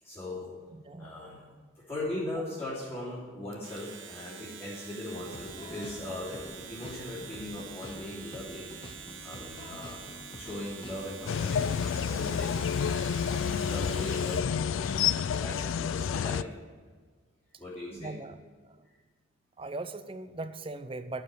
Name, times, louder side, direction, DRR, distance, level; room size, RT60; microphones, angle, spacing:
voice 1, 0.0-0.5 1.0-1.4 1.7-8.7 9.2-10.0 10.3-16.4 17.6-18.1, left 1 dB, 10° left, -12 dB, 3.3 m, -39 dB
voice 2, 0.7-1.1 17.9-18.4 19.6-21.2, right 2 dB, 25° right, 11 dB, 0.6 m, -39 dB
Domestic sounds home sounds, 3.5-14.6, right 7 dB, 75° right, 1.0 m, -46 dB
sound 1, 5.2-15.5, left 1 dB, 25° left, 1.0 m, -47 dB
sound 2, 11.3-16.4, left 7 dB, 80° left, 0.3 m, -29 dB
13.5 x 4.9 x 9.1 m, 1.5 s
head